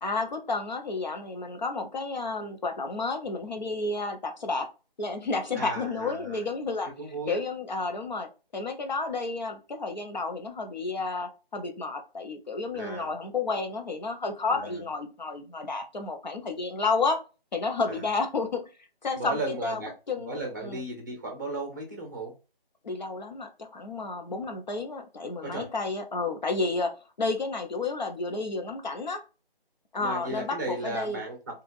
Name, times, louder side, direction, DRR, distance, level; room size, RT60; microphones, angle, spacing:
voice 1, 0.0-4.7 5.0-6.9 7.3-17.2 17.5-18.6 19.0-19.8 20.1-20.8 22.8-29.2 29.9-31.2, left 3 dB, 50° left, 5 dB, 0.7 m, -31 dB
voice 2, 5.5-6.4 6.8-7.4 12.7-13.1 14.5-14.8 17.9-18.1 19.2-19.9 20.2-22.3 25.4-25.7 30.0-31.4, right 2 dB, 20° right, 1 dB, 0.7 m, -35 dB
3.2 x 2.4 x 2.6 m, 0.32 s
figure-of-eight pair, 160°, 30 cm